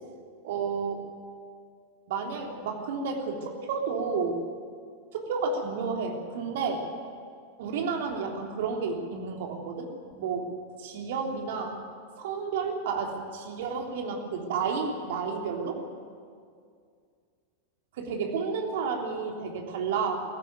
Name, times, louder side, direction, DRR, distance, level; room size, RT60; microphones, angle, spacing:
voice 1, 0.4-1.0 2.1-4.4 5.1-6.8 7.6-9.9 10.2-10.5 10.8-11.8 12.2-15.8 18.0-20.2, right 5 dB, 55° right, 2 dB, 3.3 m, -31 dB
22.0 x 15.0 x 9.2 m, 2.2 s
figure-of-eight pair, 90°, 0 cm